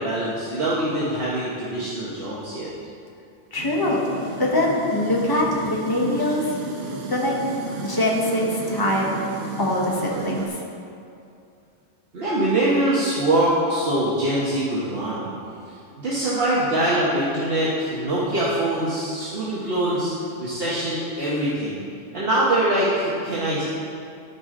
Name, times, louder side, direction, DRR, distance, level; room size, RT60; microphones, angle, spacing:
voice 1, 0.0-2.7 12.1-15.3 16.0-20.1 20.4-21.8 22.1-23.6, right 1 dB, 55° right, -8 dB, 1.4 m, -23 dB
voice 2, 3.5-4.0 4.4-6.4 7.1-7.4 7.8-9.1 9.6-10.5, left 1 dB, 20° left, -3 dB, 1.1 m, -23 dB
sound 1, 3.6-10.5, right 3 dB, 90° right, 1.2 m, -33 dB
13.0 x 4.9 x 3.8 m, 2.5 s
omnidirectional pair, 1.2 m